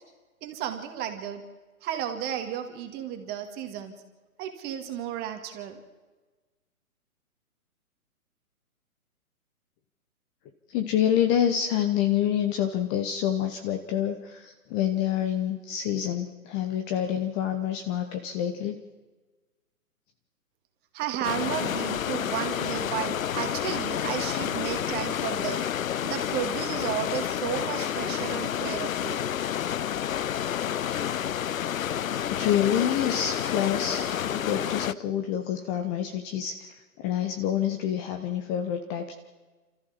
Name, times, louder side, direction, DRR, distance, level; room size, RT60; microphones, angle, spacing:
voice 1, 0.4-1.4 1.8-3.9 4.4-5.8 20.9-25.6 26.0-29.2, right 10 dB, 20° right, 7 dB, 2.2 m, -33 dB
voice 2, 10.7-18.8 32.3-36.7 37.0-39.1, left 10 dB, 20° left, 7 dB, 0.9 m, -27 dB
sound 1, 21.2-34.9, left 10 dB, 65° left, 0.7 m, -29 dB
27.5 x 14.0 x 7.3 m, 1.3 s
figure-of-eight pair, 135°, 44 cm